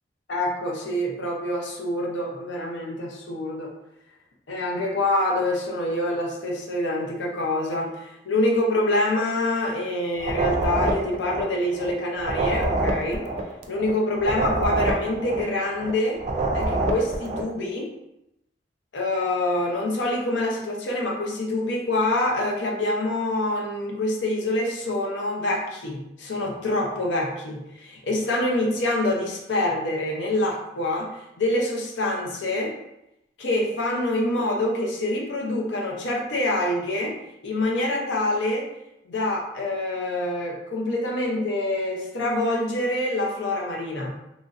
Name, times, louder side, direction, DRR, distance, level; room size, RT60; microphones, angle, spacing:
voice 1, 0.3-3.7 4.5-13.2 13.7-16.2 16.5-17.9 18.9-32.8 33.4-37.2 37.4-38.7 39.1-44.1, left 1 dB, 80° left, -1 dB, 0.6 m, -26 dB
sound 1, 10.2-11.9 12.2-15.9 16.2-17.5, right 2 dB, 40° right, 0.3 m, -26 dB
3.0 x 2.5 x 2.4 m, 0.86 s
head